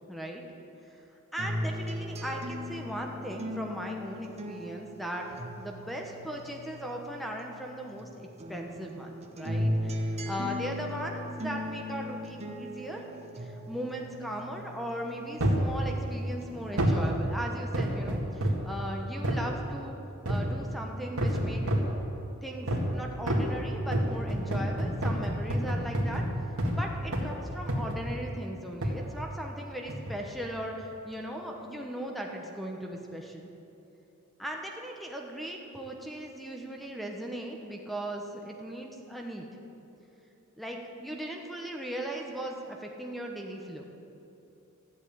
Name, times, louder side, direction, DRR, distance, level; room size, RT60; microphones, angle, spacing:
voice 1, 0.1-0.4 1.3-5.2 5.6-13.0 13.4-20.0 20.2-21.8 22.4-26.2 26.7-33.5 34.4-39.5 40.6-43.8, equal, ahead, 1 dB, 1.1 m, -38 dB
sound 1, 1.4-8.0 8.4-16.0 16.4-17.4, equal, 30° right, 1.0 m, -37 dB
sound 2, 15.4-15.7 16.8-17.1 17.7-18.7 19.2-19.5 20.3-20.6 21.2-22.0 22.7-23.0 23.3-26.8 27.1-27.4 27.7-28.1 28.8-29.0 29.9-30.2 30.8-30.9, equal, 80° right, 1.9 m, -28 dB
13.5 x 8.0 x 8.8 m, 2.9 s
head